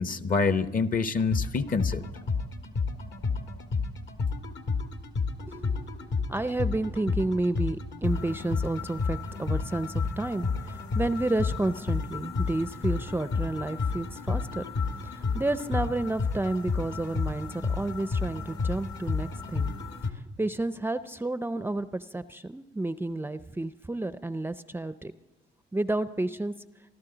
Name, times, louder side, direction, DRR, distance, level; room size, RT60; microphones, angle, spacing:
voice 1, 0.0-2.0, left 4 dB, 45° left, 11 dB, 0.9 m, -26 dB
sound 1, 1.2-20.1, left 4 dB, 65° left, 1.6 m, -31 dB
voice 2, 5.5-5.9 6.3-14.6 15.0-19.7 20.1-25.1 25.7-26.5, right 2 dB, 10° right, 12 dB, 0.5 m, -31 dB
27.0 x 12.5 x 3.9 m, 0.98 s
cardioid pair, 90°, 20 cm